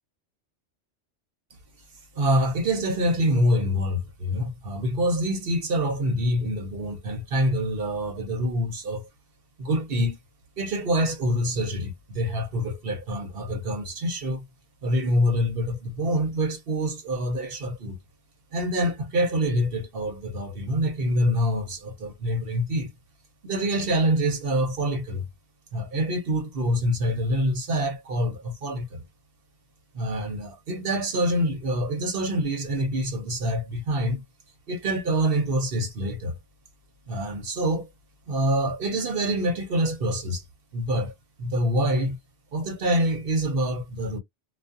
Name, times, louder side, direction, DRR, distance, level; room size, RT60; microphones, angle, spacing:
voice 1, 2.2-9.1 9.6-10.2 10.6-14.4 14.8-18.0 18.5-22.9 23.4-25.2 25.7-29.0 29.9-34.2 34.7-36.4 37.1-37.9 38.3-40.4 40.7-42.2 42.5-44.2, equal, 55° right, 0.9 m, -26 dB
2.3 x 2.3 x 2.6 m
omnidirectional pair, 1.2 m